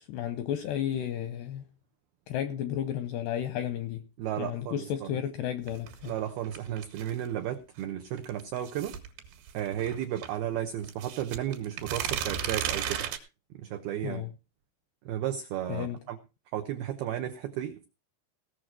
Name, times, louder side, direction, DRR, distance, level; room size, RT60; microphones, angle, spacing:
voice 1, 0.0-1.6 2.3-4.0 4.4-6.1 14.0-14.3 15.7-16.0, left 10 dB, 80° left, 2.4 m, -33 dB
voice 2, 4.2-5.1 6.1-8.9 9.5-13.1 13.5-14.2 15.1-16.2 16.5-17.9, right 11 dB, 85° right, 2.2 m, -33 dB
sound 1, 5.7-7.3 8.2-10.3 10.8-13.2, right 9 dB, 65° right, 3.6 m, -34 dB
18.0 x 6.4 x 6.0 m
omnidirectional pair, 5.7 m